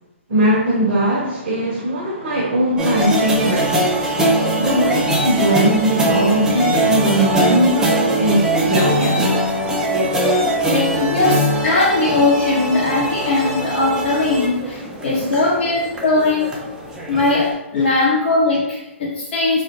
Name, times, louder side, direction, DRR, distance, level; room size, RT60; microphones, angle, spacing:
voice 1, 0.3-4.0 4.3-9.3 10.6-10.7 15.1-15.4 17.8-17.9, right 1 dB, 50° right, -2 dB, 0.6 m, -20 dB
sound 1, 2.8-17.5, right 1 dB, 10° right, 0.4 m, -21 dB
voice 2, 11.0-16.5 17.1-19.6, left 2 dB, 55° left, -6 dB, 0.7 m, -19 dB
2.2 x 2.1 x 3.0 m, 0.89 s
hypercardioid pair, 130°, 7 cm